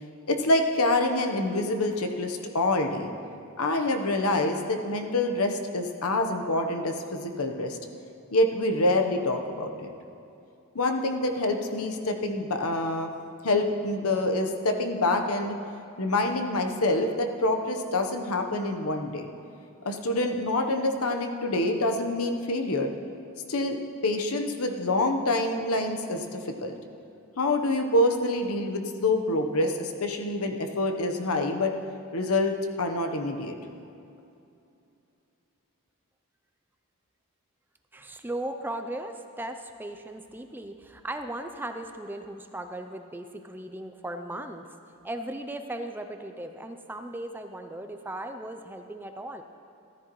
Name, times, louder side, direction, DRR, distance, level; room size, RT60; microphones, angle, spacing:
voice 1, 0.3-3.1 3.6-7.8 8.3-9.9 10.7-13.1 13.4-15.6 16.0-19.3 19.8-22.9 23.5-26.7 27.4-31.7 32.1-33.5, left 2 dB, 80° left, 4 dB, 0.9 m, -26 dB
voice 2, 37.9-44.7 45.0-49.4, right 1 dB, 10° right, 6 dB, 0.4 m, -37 dB
14.5 x 13.5 x 3.1 m, 2.7 s
head